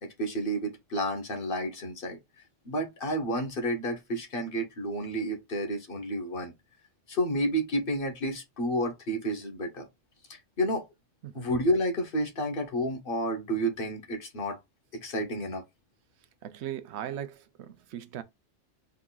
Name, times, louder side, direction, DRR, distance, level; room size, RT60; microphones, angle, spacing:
voice 1, 0.0-2.2 2.6-6.5 7.1-9.9 10.3-10.8 11.3-14.6 15.0-15.6, equal, 55° left, 1.2 m, -30 dB
voice 2, 16.4-18.2, right 10 dB, 75° right, 0.8 m, -38 dB
3.9 x 3.6 x 2.3 m
omnidirectional pair, 1.2 m